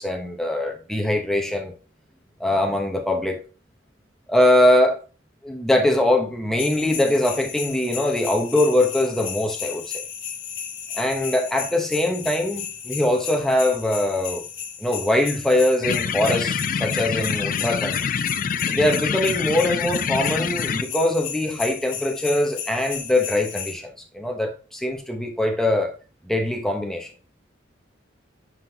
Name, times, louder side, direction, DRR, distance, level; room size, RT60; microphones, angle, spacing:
voice 1, 0.0-1.7 2.4-3.4 4.3-5.0 5.4-10.0 11.0-14.4 14.8-18.0 18.7-25.9 26.2-27.1, left 1 dB, ahead, 0.9 m, -22 dB
sound 1, 6.6-23.7, left 8 dB, 80° left, 1.5 m, -34 dB
sound 2, 15.8-20.8, left 7 dB, 45° left, 0.4 m, -26 dB
9.4 x 3.8 x 2.8 m
head